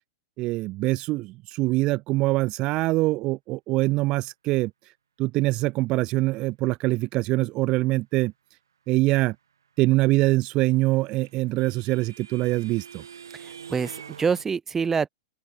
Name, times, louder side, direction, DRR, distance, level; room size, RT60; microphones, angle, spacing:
voice 1, 0.4-4.9 5.2-8.3 8.9-9.3 9.8-13.0, right 20 dB, 40° right, 1.0 m, -24 dB
sound 1, 10.6-14.4, right 7 dB, 85° right, 1.5 m, -45 dB
voice 2, 13.3-15.1, right 6 dB, 15° right, 1.8 m, -26 dB
open air
hypercardioid pair, 110°, 2 cm